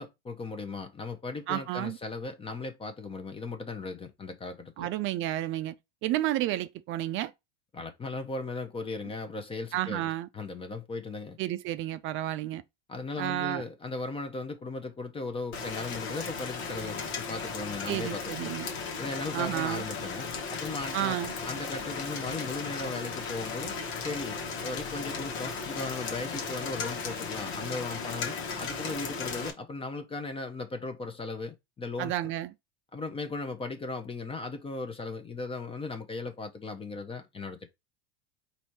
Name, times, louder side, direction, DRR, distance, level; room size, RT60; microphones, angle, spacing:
voice 1, 0.0-4.9 7.7-11.4 12.9-18.5 19.0-21.2 21.4-23.7 24.0-32.3 32.9-37.7, left 3 dB, 15° left, 0.7 m, -37 dB
voice 2, 1.5-2.0 4.8-5.8 6.0-7.3 9.7-10.3 11.4-12.6 13.2-13.6 17.9-18.7 19.3-19.8 20.9-21.3 32.0-32.5, right 14 dB, 40° right, 0.4 m, -31 dB
Rain, 15.5-29.5, left 5 dB, 75° left, 1.3 m, -36 dB
4.2 x 2.7 x 4.5 m
hypercardioid pair, 105°, 33 cm